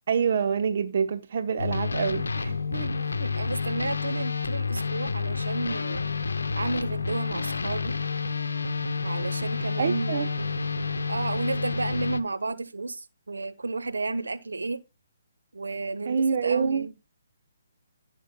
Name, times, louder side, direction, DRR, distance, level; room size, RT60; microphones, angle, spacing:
voice 1, 0.1-2.6 9.8-10.3 16.0-16.9, right 6 dB, 50° right, 0.9 m, -26 dB
sound 1, 1.6-12.2, left 4 dB, 75° left, 0.7 m, -29 dB
voice 2, 2.7-6.1 6.6-8.0 9.0-10.5 11.1-14.8 15.5-16.9, right 3 dB, 75° right, 1.1 m, -32 dB
16.5 x 5.8 x 2.2 m
figure-of-eight pair, 140°, 0 cm